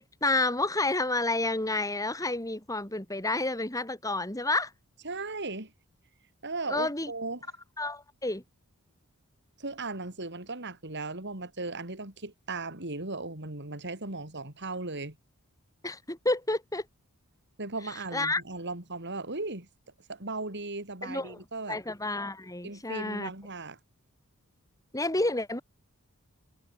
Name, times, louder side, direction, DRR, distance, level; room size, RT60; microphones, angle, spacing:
voice 1, 0.0-4.7 6.7-7.1 7.8-8.4 15.8-16.8 18.1-18.4 21.0-21.4 21.7-23.3 24.9-25.6, left 2 dB, 15° left, 3.8 m, -30 dB
voice 2, 5.0-5.7 6.4-7.4 9.6-15.2 17.6-19.7 20.1-21.8 22.6-23.8, right 3 dB, 50° right, 4.4 m, -37 dB
head